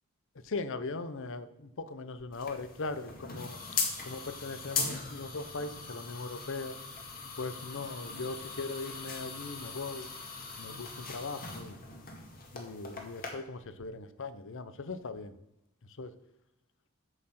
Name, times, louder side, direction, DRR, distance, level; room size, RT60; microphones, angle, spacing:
voice 1, 0.4-3.6 4.0-6.8 7.4-10.2 10.6-11.8 12.5-15.3 16.0-16.1, left 3 dB, 65° left, 12 dB, 0.8 m, -39 dB
sound 1, 2.3-13.3, left 4 dB, 45° left, 2.0 m, -40 dB
7.8 x 7.7 x 5.9 m, 0.84 s
head